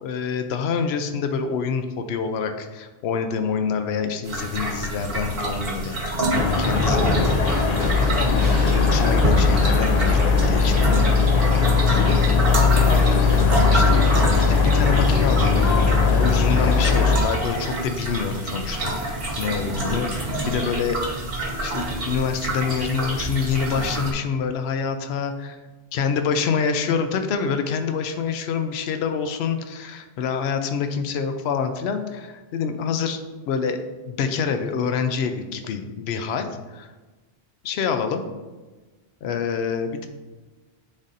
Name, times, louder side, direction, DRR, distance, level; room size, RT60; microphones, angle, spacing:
voice 1, 0.0-7.6 8.3-15.7 16.0-21.2 21.6-25.3 25.9-33.2 33.5-36.9 37.6-38.2 39.2-40.1, left 6 dB, 75° left, 7 dB, 0.8 m, -27 dB
sound 1, 4.2-24.1, right 1 dB, 65° right, 1.4 m, -27 dB
sound 2, 6.3-17.2, left 4 dB, 50° left, 0.5 m, -19 dB
9.6 x 4.1 x 2.6 m, 1.2 s
omnidirectional pair, 1.1 m